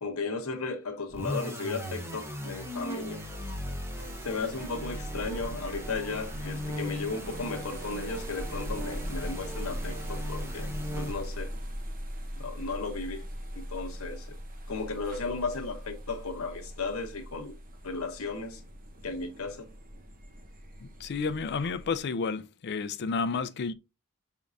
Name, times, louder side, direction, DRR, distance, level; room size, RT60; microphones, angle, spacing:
voice 1, 0.0-3.2 4.2-10.7 10.9-11.5 12.4-13.2 13.5-14.3 14.7-17.5 17.8-18.6 19.0-19.7, left 4 dB, 70° left, 1.0 m, -35 dB
sound 1, 1.1-11.5, equal, 10° right, 0.9 m, -38 dB
sound 2, 4.0-22.0, equal, 40° right, 0.8 m, -40 dB
voice 2, 20.8-23.7, left 4 dB, 50° left, 0.4 m, -31 dB
5.2 x 3.6 x 2.6 m
head